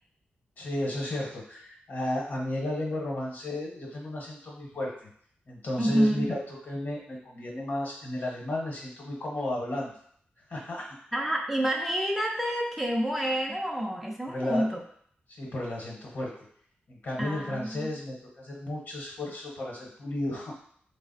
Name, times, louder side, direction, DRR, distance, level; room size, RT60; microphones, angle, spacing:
voice 1, 0.6-5.1 5.5-9.9 10.5-11.0 14.3-14.8 15.3-16.3 16.9-20.5, left 1 dB, 60° left, -3 dB, 1.0 m, -33 dB
voice 2, 5.8-6.3 11.1-14.8 17.2-17.9, equal, 5° right, -1 dB, 0.5 m, -28 dB
3.3 x 2.0 x 4.0 m, 0.62 s
cardioid pair, 70°, 4 cm